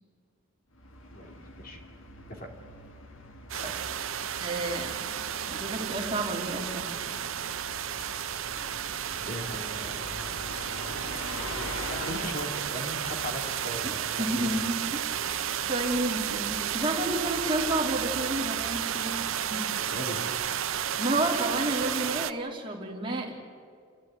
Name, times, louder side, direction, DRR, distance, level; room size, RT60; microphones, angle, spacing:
Bus, 0.7-19.3, left 1 dB, 65° left, 1.9 m, -45 dB
sound 1, 3.5-22.3, right 9 dB, 70° right, 0.8 m, -32 dB
voice 1, 4.4-4.9 5.3-6.9 13.8-13.9 14.2-15.3 15.7-19.2 19.5-19.7 21.0-23.4, right 2 dB, 25° right, -1 dB, 3.3 m, -30 dB
voice 2, 9.3-10.0 11.4-14.6 19.8-20.4, equal, 40° left, 2 dB, 2.8 m, -38 dB
29.5 x 14.5 x 9.3 m, 2.2 s
head